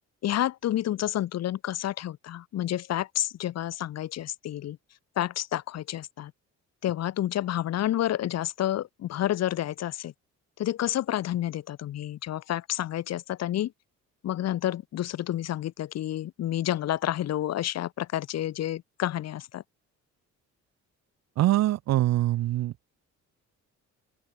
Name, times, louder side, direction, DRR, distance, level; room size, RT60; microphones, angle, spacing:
voice 1, 0.2-4.8 5.2-6.3 6.8-10.1 10.6-13.7 14.2-19.6, left 12 dB, 60° left, 1.7 m, -29 dB
voice 2, 21.4-22.7, right 15 dB, 60° right, 0.7 m, -23 dB
open air
cardioid pair, 170°, 30 cm